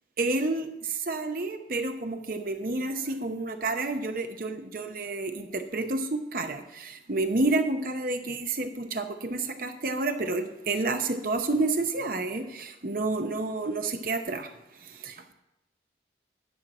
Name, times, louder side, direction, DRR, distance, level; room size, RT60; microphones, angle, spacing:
voice 1, 0.2-14.5 14.8-15.3, right 2 dB, 50° right, 6 dB, 0.9 m, -30 dB
10.5 x 4.6 x 7.4 m, 0.87 s
head